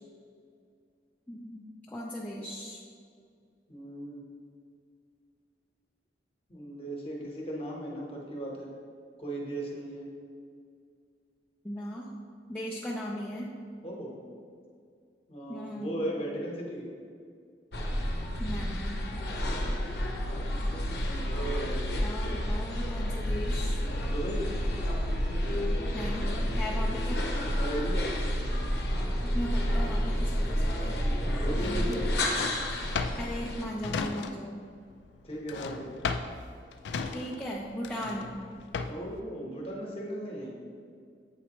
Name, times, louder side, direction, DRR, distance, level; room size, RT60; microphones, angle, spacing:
voice 1, 1.3-2.8 11.6-12.1 12.5-13.5 15.5-16.0 18.4-19.0 22.0-23.8 25.9-27.2 29.2-30.9 31.5-32.0 33.2-34.6 37.1-38.3, equal, 10° left, -6 dB, 0.4 m, -37 dB
voice 2, 3.7-4.2 6.5-8.7 9.2-10.1 13.8-14.2 15.3-16.8 20.7-21.8 24.0-24.5 27.6-28.1 31.4-32.0 35.2-36.0 38.9-40.6, right 1 dB, 35° left, -2 dB, 1.0 m, -37 dB
sound 1, 17.7-33.6, equal, 60° left, 0.8 m, -30 dB
Drawer open or close, 31.5-34.7 34.9-39.2, left 4 dB, 80° left, 0.3 m, -36 dB
8.1 x 4.2 x 3.0 m, 2.2 s
head